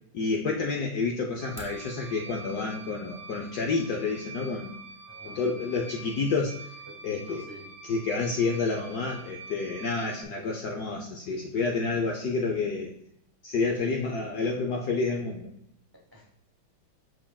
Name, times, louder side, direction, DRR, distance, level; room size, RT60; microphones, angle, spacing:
voice 1, 0.1-4.7 5.2-6.6 7.0-7.4 7.9-12.9 13.4-15.5, left 4 dB, 70° left, 1 dB, 0.9 m, -29 dB
sound 1, 1.3-1.9, right 2 dB, 10° right, 1.8 m, -46 dB
sound 2, 1.4-10.2, right 3 dB, 60° right, 1.6 m, -46 dB
voice 2, 5.1-5.5 5.8-5.9 6.9-7.7 10.3-10.5 15.9-16.3, equal, 30° right, -1 dB, 0.4 m, -48 dB
7.4 x 5.8 x 2.3 m, 0.77 s
omnidirectional pair, 2.3 m